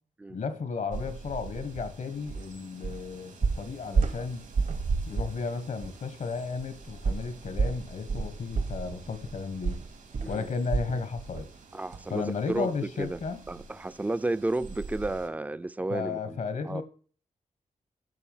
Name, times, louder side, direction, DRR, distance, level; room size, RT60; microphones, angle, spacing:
voice 1, 0.3-4.4 5.0-9.8 10.2-11.5 12.1-13.4 15.9-16.8, left 5 dB, 75° left, 1.5 m, -34 dB
sound 1, 0.9-15.3, right 4 dB, 85° right, 2.4 m, -42 dB
sound 2, 2.3-2.5 2.8-3.1 3.4-4.9 5.1-5.4 5.8-5.9 7.0-11.0 11.3-11.6 11.9-12.0, right 4 dB, 70° right, 1.1 m, -30 dB
voice 2, 11.7-13.2 13.5-16.8, right 2 dB, 10° right, 0.4 m, -32 dB
8.4 x 6.0 x 7.2 m
cardioid pair, 80°, 13 cm